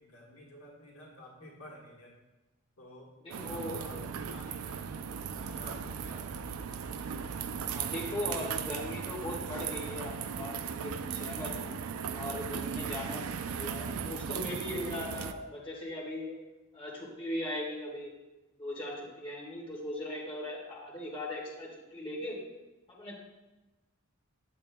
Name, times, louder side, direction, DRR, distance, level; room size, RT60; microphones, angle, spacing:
voice 1, 0.0-2.2 2.8-4.9 5.3-7.0, left 1 dB, 80° left, -3 dB, 1.4 m, -51 dB
voice 2, 3.2-3.8 7.6-11.7 12.1-16.4 16.7-18.1 18.6-22.4 22.9-23.1, left 1 dB, 25° left, -4 dB, 1.6 m, -39 dB
sound 1, 3.3-15.3, right 7 dB, 80° right, 0.4 m, -37 dB
8.5 x 6.9 x 2.2 m, 1.1 s
head